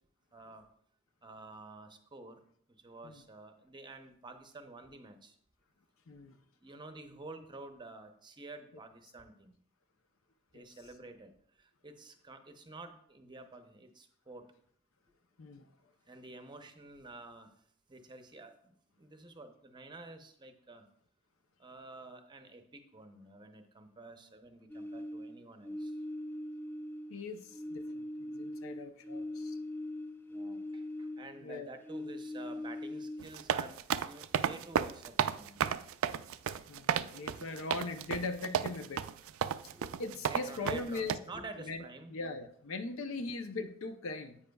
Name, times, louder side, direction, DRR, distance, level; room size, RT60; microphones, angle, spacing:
voice 1, 0.3-0.6 1.2-2.4 2.8-5.3 6.6-9.5 10.5-11.3 11.6-14.5 16.1-17.5 17.9-20.8 21.6-25.9 30.3-33.8 34.1-36.0 39.7-39.9 40.3-42.1, right 2 dB, 20° right, 7 dB, 0.7 m, -50 dB
voice 2, 6.1-6.4 10.5-10.6 15.4-15.7 27.1-29.6 31.4-31.7 36.7-39.1 39.6-39.7 40.0-41.2 41.6-41.8 42.1-44.4, left 3 dB, 65° left, 9 dB, 0.7 m, -40 dB
sound 1, 24.7-27.2 27.5-31.4 31.8-33.4, left 1 dB, 10° left, 0.3 m, -41 dB
sound 2, 33.2-41.2, right 8 dB, 65° right, 0.4 m, -32 dB
10.5 x 8.4 x 2.3 m, 0.66 s
head